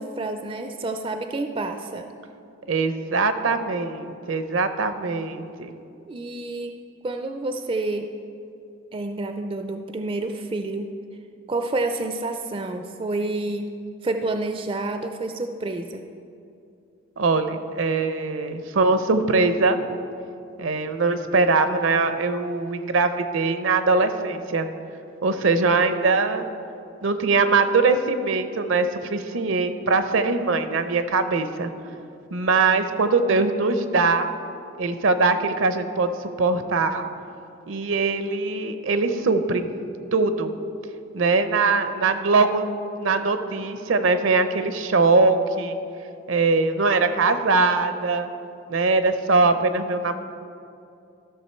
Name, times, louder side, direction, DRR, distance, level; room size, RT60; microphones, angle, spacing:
voice 1, 0.0-2.1 6.1-6.8 7.0-8.1 8.9-10.9 11.5-13.7 14.0-16.0, right 2 dB, 25° right, 6 dB, 0.4 m, -29 dB
voice 2, 2.7-5.7 17.2-19.8 20.6-24.7 25.2-26.5 27.0-31.7 32.3-34.3 34.8-36.1 36.4-37.1 37.7-39.7 40.1-40.5 41.1-42.7 43.0-45.8 46.3-48.3 48.7-50.2, right 3 dB, 70° right, 9 dB, 0.6 m, -22 dB
14.0 x 6.5 x 4.4 m, 2.6 s
head